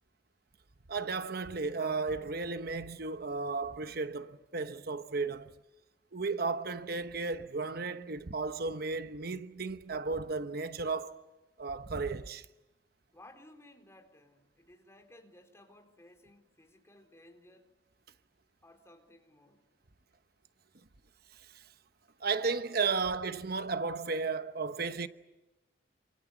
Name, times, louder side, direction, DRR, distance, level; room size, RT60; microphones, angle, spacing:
voice 1, 0.9-5.5 6.1-11.3 11.6-12.5 21.3-21.7 22.2-25.1, right 4 dB, 60° right, 1.0 m, -34 dB
voice 2, 13.1-17.7 18.6-19.7, left 1 dB, 15° left, 4.2 m, -58 dB
28.5 x 27.0 x 7.2 m
head